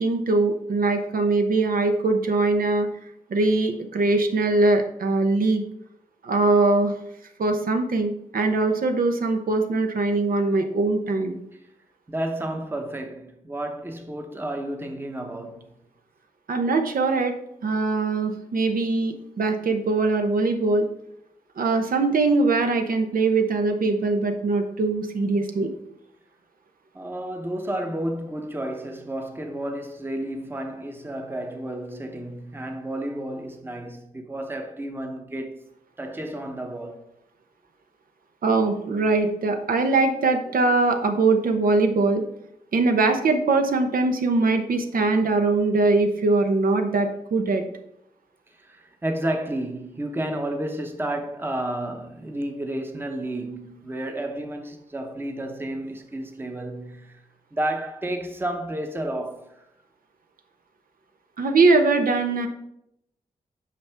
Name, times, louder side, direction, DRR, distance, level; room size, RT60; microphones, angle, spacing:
voice 1, 0.0-2.9 3.3-5.6 6.2-7.0 7.4-11.4 16.5-17.3 17.6-20.9 21.6-25.7 38.4-42.2 42.7-47.6 61.4-62.5, right 3 dB, 85° right, 0.9 m, -22 dB
voice 2, 12.1-15.7 26.9-35.6 36.0-37.0 48.6-57.2 57.5-59.5, right 1 dB, 15° right, 0.8 m, -31 dB
8.5 x 5.9 x 3.5 m
wide cardioid pair, 140°, 14 cm